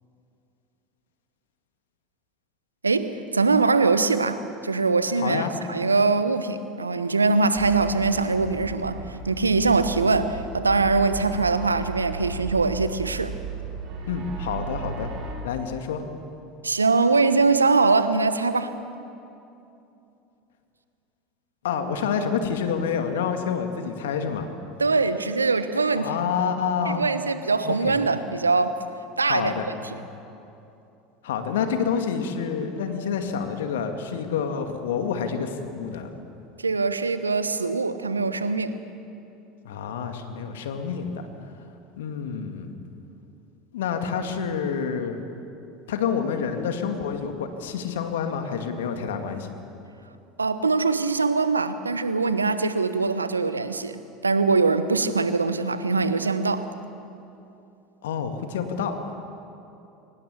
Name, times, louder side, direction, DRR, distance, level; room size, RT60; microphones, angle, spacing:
voice 1, 2.8-13.4 16.6-18.7 24.8-26.1 26.9-28.8 29.2-29.7 36.6-38.8 50.4-56.7, right 4 dB, 90° right, 12 dB, 1.0 m, -22 dB
voice 2, 5.2-5.5 14.1-15.1 15.4-16.0 21.6-24.5 25.9-27.1 27.6-28.0 29.2-29.7 31.2-36.1 39.6-41.3 42.0-42.7 43.7-45.2 45.9-49.6 58.0-59.1, left 6 dB, 70° left, 6 dB, 2.1 m, -28 dB
sound 1, 7.5-15.3, right 4 dB, 50° right, 5.4 m, -35 dB
23.5 x 20.0 x 7.1 m, 2.8 s
figure-of-eight pair, 75°, 0 cm